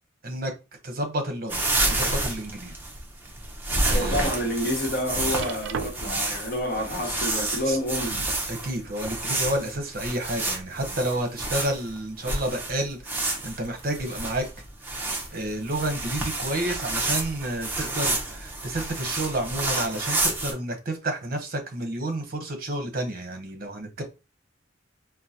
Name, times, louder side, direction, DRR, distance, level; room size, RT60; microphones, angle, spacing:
voice 1, 0.8-1.6 1.9-2.7 3.9-4.3 7.6-7.8 8.5-14.5 14.9-24.0, right 1 dB, 50° right, 0.8 m, -30 dB
sound 1, 1.5-20.5, right 2 dB, 10° right, 0.7 m, -29 dB
sound 2, 1.5-2.3 2.8-2.9 3.5-3.6 5.4-6.3 7.6-8.4 9.3-9.4, right 6 dB, 75° right, 0.3 m, -37 dB
voice 2, 3.9-8.2, left 1 dB, 55° left, 1.0 m, -28 dB
3.8 x 2.2 x 2.7 m
head